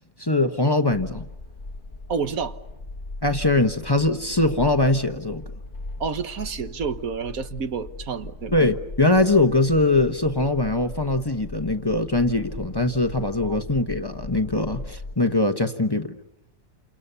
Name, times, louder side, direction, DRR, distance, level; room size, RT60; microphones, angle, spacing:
voice 1, 0.2-1.2 3.2-5.4 8.5-16.1, left 2 dB, 20° left, 1.1 m, -22 dB
sound 1, 0.9-15.1, left 2 dB, 40° left, 1.3 m, -38 dB
voice 2, 2.1-2.6 6.0-8.6 13.4-13.6, right 5 dB, 85° right, 1.7 m, -29 dB
29.0 x 28.0 x 6.9 m
omnidirectional pair, 1.4 m